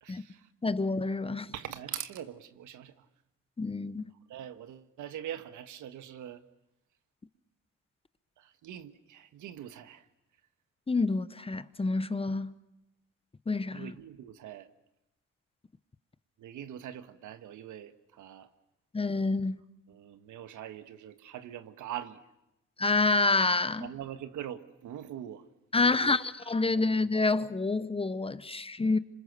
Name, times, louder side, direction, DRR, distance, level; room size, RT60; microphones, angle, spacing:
voice 1, 0.0-0.5 1.5-3.0 4.3-6.4 8.4-10.1 13.7-14.7 16.4-18.5 19.9-22.2 23.8-25.4 25.7-26.2 26.6-26.8 28.8-29.0, right 10 dB, 80° right, 1.4 m, -43 dB
voice 2, 0.6-1.5 3.6-4.1 10.9-12.5 13.5-13.9 18.9-19.6 22.8-23.9 25.7-29.0, left 3 dB, 20° left, 0.9 m, -28 dB
27.0 x 26.0 x 6.8 m
cardioid pair, 90°, 30 cm